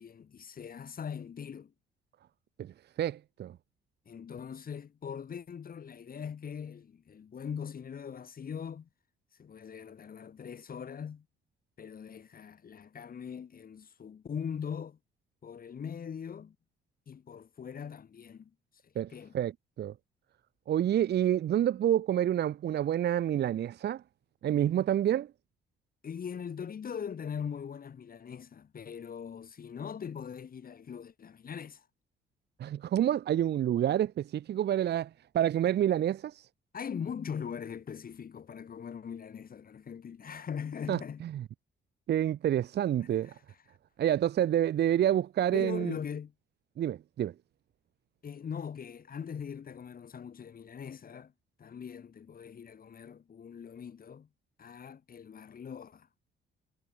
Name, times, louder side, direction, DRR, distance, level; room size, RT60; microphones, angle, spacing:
voice 1, 0.0-1.7 4.1-8.9 9.3-11.3 11.8-15.0 15.4-16.6 17.1-18.5 18.8-19.4 26.0-31.9 36.7-41.2 43.1-43.6 45.5-46.3 48.2-51.3 51.6-54.3 54.6-56.1, left 7 dB, 45° left, 2.4 m, -41 dB
voice 2, 3.0-3.5 19.0-19.5 19.8-19.9 20.7-24.0 24.4-25.3 32.6-35.1 35.3-36.5 40.9-41.0 41.3-41.4 42.1-43.3 44.0-45.9 46.8-47.3, right 11 dB, 55° right, 0.7 m, -28 dB
cardioid pair, 90°, 20 cm